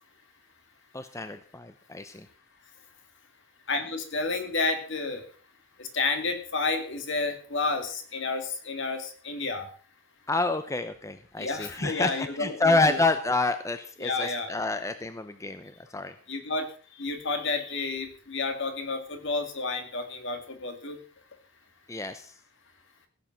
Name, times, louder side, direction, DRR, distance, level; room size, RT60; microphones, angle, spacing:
voice 1, 0.9-2.3 10.3-16.1 21.9-22.3, left 3 dB, 15° left, 10 dB, 0.7 m, -28 dB
voice 2, 3.7-5.2 5.8-9.7 11.4-13.0 14.0-14.5 16.3-16.6 17.0-21.0, left 3 dB, 60° left, 7 dB, 2.4 m, -30 dB
16.5 x 8.0 x 6.0 m, 0.43 s
head